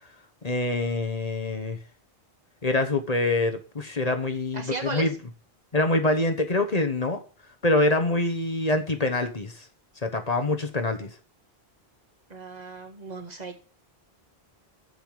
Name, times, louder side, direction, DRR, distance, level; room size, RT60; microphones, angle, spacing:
voice 1, 0.4-1.8 2.6-5.1 5.7-7.2 7.6-9.6 10.0-11.1, left 2 dB, 40° left, 6 dB, 1.2 m, -25 dB
voice 2, 4.5-5.1 12.3-13.6, right 3 dB, 40° right, 4 dB, 1.7 m, -36 dB
7.7 x 6.9 x 7.3 m, 0.39 s
omnidirectional pair, 1.1 m